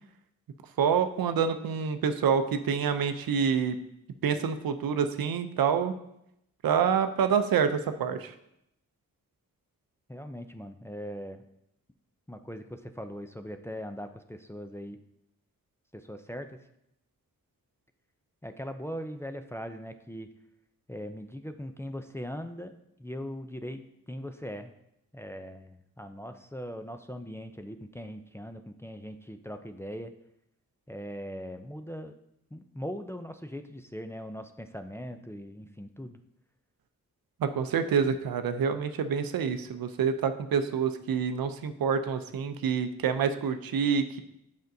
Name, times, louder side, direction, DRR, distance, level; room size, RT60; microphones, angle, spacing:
voice 1, 0.8-3.8 4.2-5.9 6.6-8.3 37.4-44.2, right 7 dB, 80° right, 9 dB, 0.6 m, -27 dB
voice 2, 10.1-11.4 12.3-15.0 15.9-16.6 18.4-20.3 20.9-22.7 23.0-23.8 24.1-24.7 25.1-30.1 30.9-32.1 32.5-36.2, equal, 10° left, 6 dB, 0.4 m, -40 dB
7.8 x 5.2 x 2.6 m, 0.79 s
cardioid pair, 55°, 35 cm